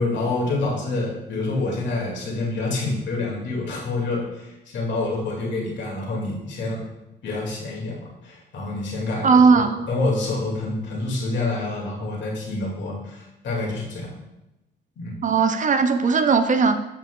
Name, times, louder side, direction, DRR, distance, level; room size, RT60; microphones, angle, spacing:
voice 1, 0.0-6.8 7.2-9.4 9.9-14.1 15.0-15.1, left 2 dB, 65° left, -3 dB, 2.1 m, -27 dB
voice 2, 9.2-9.9 15.2-16.7, right 5 dB, 40° right, 9 dB, 0.5 m, -18 dB
7.6 x 5.8 x 2.3 m, 0.95 s
cardioid pair, 90°, 20 cm